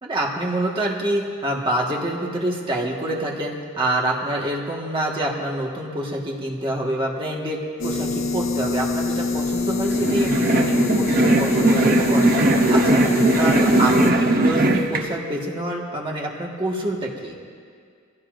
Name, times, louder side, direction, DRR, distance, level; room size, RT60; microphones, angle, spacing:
voice 1, 0.0-13.0 13.4-17.5, right 1 dB, 25° right, -2 dB, 1.7 m, -26 dB
sound 1, 7.8-14.1, left 3 dB, 75° left, 1.6 m, -25 dB
sound 2, 9.9-15.0, right 2 dB, 45° right, 1.0 m, -19 dB
22.5 x 16.5 x 2.6 m, 2.1 s
head